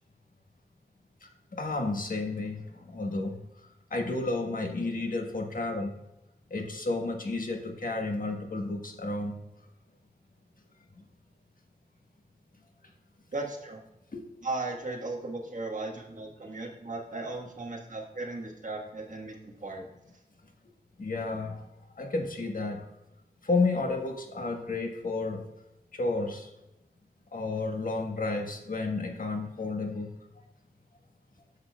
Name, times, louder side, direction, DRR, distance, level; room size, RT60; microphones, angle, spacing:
voice 1, 1.5-2.6 2.9-3.4 3.9-5.9 6.5-9.4 14.1-14.2 21.0-21.6 22.0-22.8 23.4-25.5 25.9-26.5 27.3-30.1, left 3 dB, 60° left, 2 dB, 1.3 m, -31 dB
voice 2, 13.3-13.8 14.4-19.9, right 2 dB, 50° right, -1 dB, 1.5 m, -36 dB
10.0 x 6.5 x 2.3 m, 0.94 s
wide cardioid pair, 95°, 16 cm